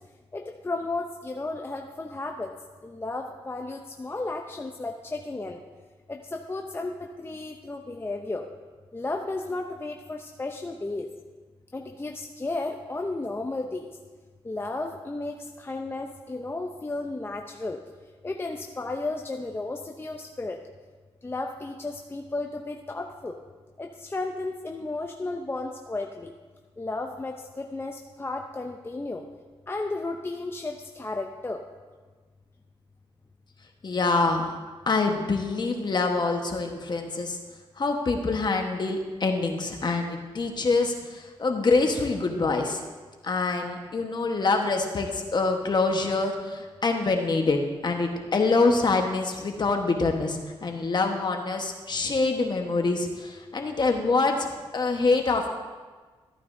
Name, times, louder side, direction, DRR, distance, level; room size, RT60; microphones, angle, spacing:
voice 1, 0.3-2.5 2.8-5.6 6.1-8.4 8.9-11.1 11.7-13.9 14.4-17.8 18.2-20.6 21.2-23.4 23.8-26.3 26.8-29.2 29.7-31.6, left 2 dB, 25° left, 2 dB, 0.7 m, -33 dB
voice 2, 33.8-34.5 34.9-37.4 37.8-42.8 43.2-47.6 47.8-55.5, left 3 dB, 45° left, 3 dB, 1.3 m, -25 dB
14.0 x 9.2 x 2.7 m, 1.4 s
cardioid pair, 75°, 10 cm